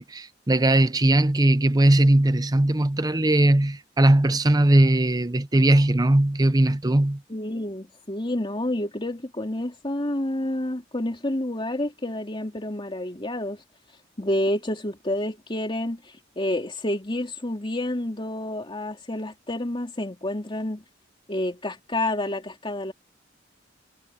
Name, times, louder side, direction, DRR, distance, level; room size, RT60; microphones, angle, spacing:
voice 1, 0.0-7.2, right 1 dB, 20° right, 0.8 m, -19 dB
voice 2, 7.3-13.6 14.2-20.8 21.3-22.9, left 1 dB, 25° left, 3.0 m, -29 dB
head